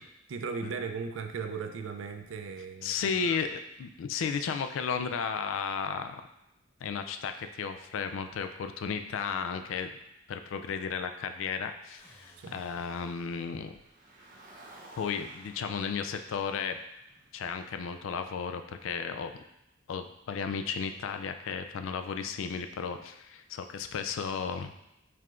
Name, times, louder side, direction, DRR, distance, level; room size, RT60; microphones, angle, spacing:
voice 1, 0.3-3.4 12.4-12.6, right 5 dB, 75° right, 7 dB, 0.4 m, -37 dB
voice 2, 2.8-6.2 6.8-9.9 10.3-13.7 15.0-16.8 17.3-19.3 19.9-24.7, left 6 dB, 80° left, 8 dB, 0.3 m, -34 dB
sound 1, 12.0-13.9, equal, 35° left, 1.3 m, -58 dB
Car, 13.6-18.0, right 1 dB, 40° right, 0.7 m, -54 dB
4.6 x 3.5 x 2.4 m, 0.86 s
head